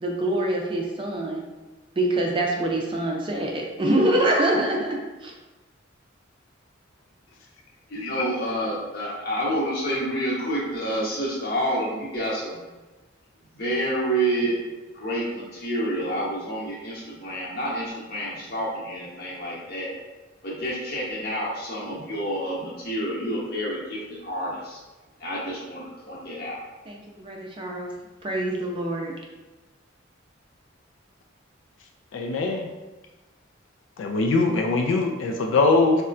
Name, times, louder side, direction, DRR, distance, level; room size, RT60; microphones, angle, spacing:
voice 1, 0.0-1.4 2.0-5.3 26.9-27.9 28.2-29.1, right 1 dB, 25° right, -1 dB, 0.4 m, -25 dB
voice 2, 7.9-12.6 13.5-14.6 14.9-19.9 20.4-24.8 25.2-26.6, right 1 dB, 50° left, -6 dB, 1.0 m, -28 dB
voice 3, 32.1-32.7 34.0-36.0, left 3 dB, 80° left, 3 dB, 0.4 m, -22 dB
4.1 x 2.2 x 2.4 m, 1.2 s
head